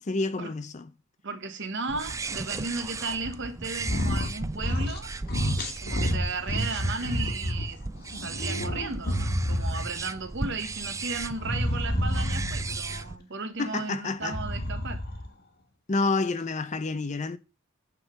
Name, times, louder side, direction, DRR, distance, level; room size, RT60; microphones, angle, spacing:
voice 1, 0.1-0.9 12.9-13.0 13.6-14.4 15.9-17.4, left 3 dB, 35° left, 0.6 m, -29 dB
voice 2, 1.2-5.1 5.8-7.8 8.2-15.0, right 4 dB, 60° right, 1.4 m, -35 dB
sound 1, 1.9-13.2, right 3 dB, 15° right, 0.4 m, -37 dB
sound 2, 3.8-4.3 4.6-5.0 5.3-7.7 8.1-10.0 11.4-12.8 14.2-15.3, equal, 50° left, 1.6 m, -29 dB
9.0 x 3.9 x 6.6 m
head